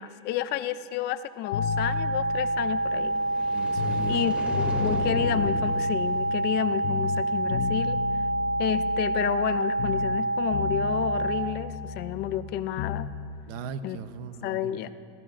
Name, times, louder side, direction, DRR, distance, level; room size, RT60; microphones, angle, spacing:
voice 1, 0.0-3.2 4.1-8.0 8.6-13.1 13.8-14.0 14.4-14.9, left 12 dB, 35° left, 13 dB, 0.4 m, -31 dB
sound 1, 1.4-11.4, right 2 dB, 50° left, 1.9 m, -27 dB
sound 2, 1.5-4.2 4.5-6.6 6.8-10.3 10.5-13.1, left 8 dB, 70° left, 0.8 m, -34 dB
sound 3, 2.8-7.1, equal, 5° right, 2.5 m, -37 dB
voice 2, 3.5-4.4 13.5-14.9, right 7 dB, 50° right, 11 dB, 0.8 m, -38 dB
27.0 x 15.5 x 2.5 m, 2.5 s
supercardioid pair, 150°, 31 cm